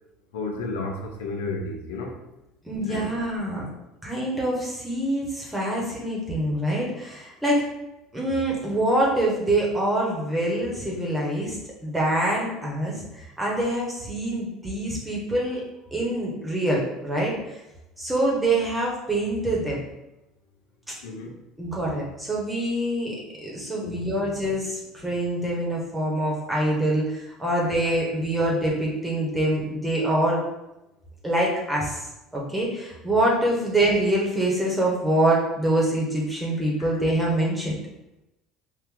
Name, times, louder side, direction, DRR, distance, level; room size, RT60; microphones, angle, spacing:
voice 1, 0.3-2.2 2.9-3.1 21.0-21.4 23.8-23.9 27.6-27.7 36.8-37.0, left 3 dB, 80° left, 1 dB, 0.8 m, -32 dB
voice 2, 2.6-3.6 4.0-7.6 8.1-11.6 11.8-13.0 13.4-15.6 15.9-17.3 18.0-19.8 20.9-21.0 21.6-23.1 23.4-30.4 31.2-32.0 32.3-37.8, right 1 dB, 10° right, -3 dB, 1.5 m, -25 dB
4.5 x 2.6 x 3.7 m, 0.91 s
hypercardioid pair, 70°, 0 cm